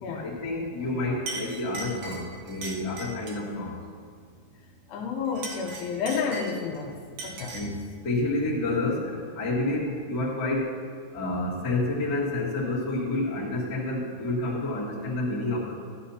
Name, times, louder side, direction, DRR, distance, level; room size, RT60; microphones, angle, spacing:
voice 1, 0.2-3.8 7.5-7.8 8.0-10.7 11.1-15.7, left 2 dB, 35° left, -6 dB, 1.9 m, -29 dB
Chink clink, 0.8-0.9 1.3-3.5 5.2-6.8 7.2-7.8, right 2 dB, 70° right, 1.8 m, -38 dB
voice 2, 4.9-7.0 7.2-7.5, left 5 dB, 80° left, 0 dB, 2.7 m, -30 dB
13.0 x 12.5 x 2.8 m, 2.1 s
omnidirectional pair, 5.0 m